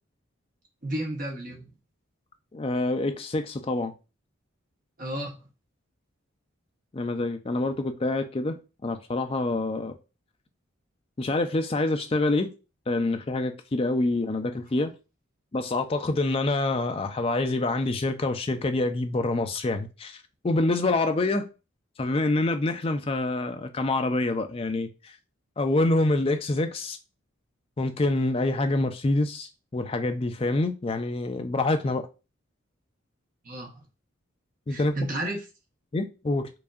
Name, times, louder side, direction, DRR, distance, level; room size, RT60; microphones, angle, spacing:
voice 1, 0.8-1.7 5.0-5.5 33.4-33.8 34.7-35.4, right 1 dB, 40° right, 0.9 m, -32 dB
voice 2, 2.5-3.9 6.9-9.9 11.2-12.5 12.9-14.9 15.5-20.2 20.4-21.5 22.0-25.1 25.6-27.0 27.8-32.0 34.7-35.0 35.9-36.5, left 2 dB, 30° left, 0.4 m, -26 dB
4.7 x 2.6 x 2.4 m
head